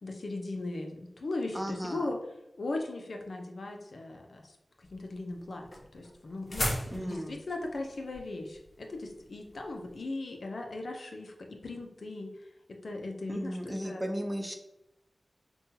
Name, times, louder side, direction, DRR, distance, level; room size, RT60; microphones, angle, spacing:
voice 1, 0.0-2.2 2.6-12.3 12.7-14.0, left 2 dB, 75° left, 3 dB, 0.5 m, -38 dB
voice 2, 1.5-2.1 6.9-7.4 13.3-14.6, equal, 15° right, 4 dB, 0.6 m, -35 dB
sound 1, 4.8-10.0, left 1 dB, 50° left, 1.1 m, -38 dB
5.3 x 2.3 x 2.7 m, 0.88 s
cardioid pair, 40°, 0 cm